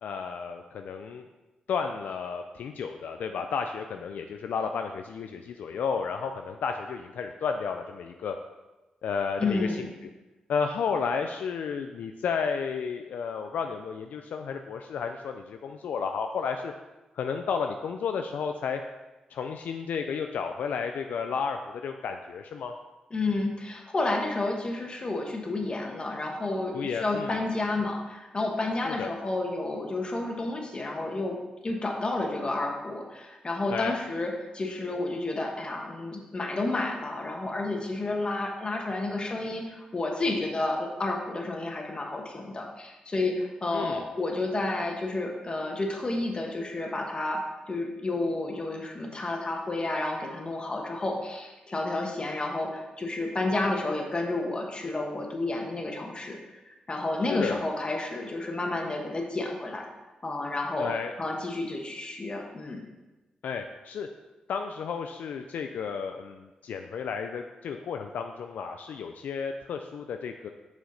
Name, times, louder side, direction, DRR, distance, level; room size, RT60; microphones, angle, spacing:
voice 1, 0.0-1.3 1.7-8.4 9.0-9.9 10.5-16.7 17.1-18.8 19.3-22.7 26.7-27.3 28.8-29.1 33.7-34.0 43.7-44.0 57.3-57.6 60.8-61.1 63.4-64.1 64.5-70.5, left 6 dB, 80° left, 5 dB, 0.3 m, -32 dB
voice 2, 9.4-9.9 23.1-31.4 31.6-47.4 47.7-56.4 56.7-59.9 60.2-60.9 61.2-62.8, left 2 dB, 35° left, 1 dB, 1.3 m, -31 dB
6.3 x 5.0 x 4.0 m, 1.1 s
cardioid pair, 60°, 3 cm